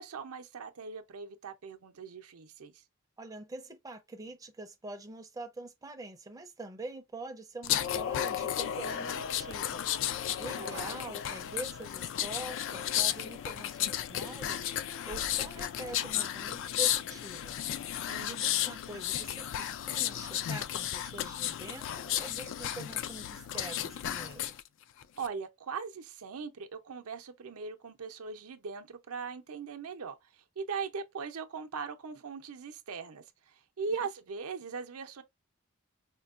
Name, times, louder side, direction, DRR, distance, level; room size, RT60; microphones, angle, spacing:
voice 1, 0.0-2.8 10.6-10.9 18.1-18.6 25.2-35.2, right 5 dB, 80° right, 0.6 m, -40 dB
voice 2, 3.2-9.9 10.4-14.7 15.1-17.6 18.2-24.6, right 2 dB, 15° right, 0.5 m, -45 dB
sound 1, 7.6-24.6 25.0-25.3, left 10 dB, 60° left, 0.3 m, -34 dB
4.3 x 2.2 x 2.4 m
head